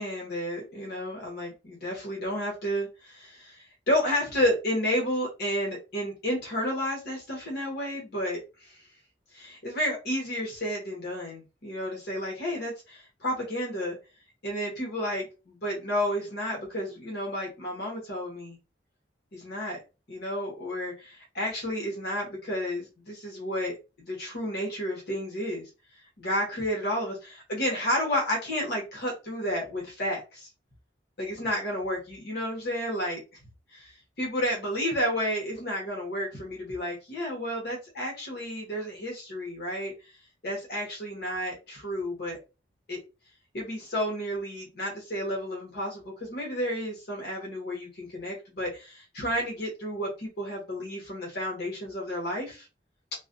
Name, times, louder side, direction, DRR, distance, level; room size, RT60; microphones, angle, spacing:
voice 1, 0.0-8.9 9.3-14.0 14.4-18.6 19.3-19.8 20.1-25.7 26.2-30.5 31.2-33.2 34.2-39.9 40.4-42.4 42.9-43.0 43.5-52.7, equal, 60° left, -1 dB, 0.9 m, -31 dB
2.3 x 2.1 x 2.5 m, 0.29 s
head